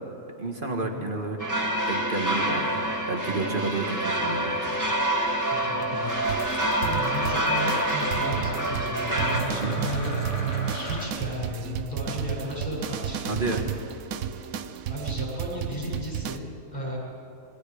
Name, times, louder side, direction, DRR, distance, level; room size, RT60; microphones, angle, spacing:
voice 1, 0.4-1.4 1.9-4.8 9.5-9.8 13.3-13.7, right 3 dB, 35° right, 2 dB, 1.9 m, -30 dB
sound 1, 1.4-9.4, right 1 dB, 10° right, 1.9 m, -27 dB
voice 2, 5.5-6.6 6.8-10.1 10.6-13.3 14.9-17.0, left 1 dB, 25° left, -5 dB, 6.9 m, -34 dB
Domestic sounds home sounds, 6.0-11.1, left 2 dB, 50° left, 3.5 m, -36 dB
sound 2, 6.3-16.4, right 9 dB, 70° right, 1.2 m, -33 dB
26.5 x 21.5 x 5.0 m, 2.8 s
omnidirectional pair, 1.6 m